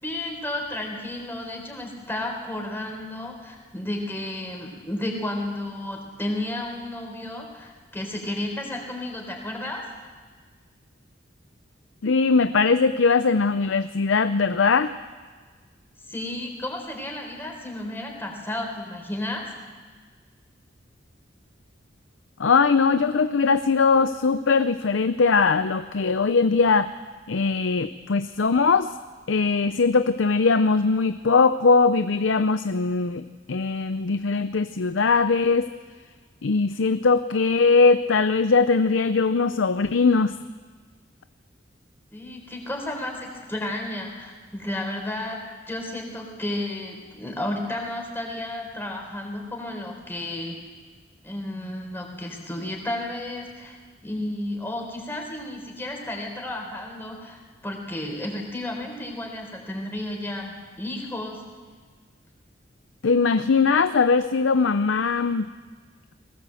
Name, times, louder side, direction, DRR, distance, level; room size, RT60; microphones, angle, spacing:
voice 1, 0.0-9.8 16.1-19.4 42.1-45.4 45.7-50.6 51.2-53.8 54.0-61.4, left 1 dB, 10° left, 1 dB, 4.0 m, -32 dB
voice 2, 12.0-15.0 22.4-26.9 27.3-28.9 29.3-35.7 36.4-40.4 63.0-65.5, left 4 dB, 90° left, 11 dB, 0.6 m, -20 dB
21.0 x 17.5 x 7.8 m, 1.5 s
head